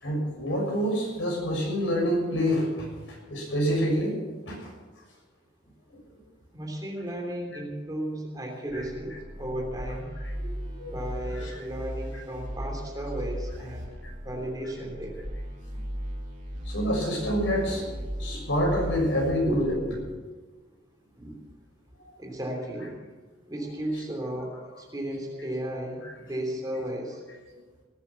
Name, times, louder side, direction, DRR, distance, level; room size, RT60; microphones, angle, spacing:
voice 1, 0.0-4.1 4.5-4.7 8.7-8.8 10.3-10.5 10.8-10.9 11.3-11.6 14.0-14.1 16.7-17.9 18.2-19.7 22.0-22.1, equal, 80° left, -1 dB, 6.4 m, -27 dB
voice 2, 6.5-10.1 10.8-13.9 14.2-15.2 19.5-20.2 21.2-21.3 22.2-22.9 23.5-27.2, right 1 dB, 20° right, 0 dB, 3.1 m, -34 dB
sound 1, 8.7-20.0, equal, 40° right, 2.7 m, -37 dB
18.5 x 9.0 x 7.1 m, 1.3 s
head